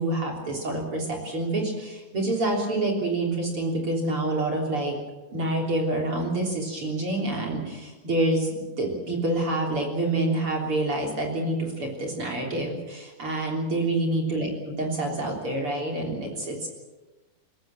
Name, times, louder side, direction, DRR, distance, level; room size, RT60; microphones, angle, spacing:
voice 1, 0.0-5.0 5.3-16.7, right 2 dB, 40° right, 0 dB, 4.2 m, -27 dB
21.5 x 20.5 x 7.6 m, 1.1 s
omnidirectional pair, 3.9 m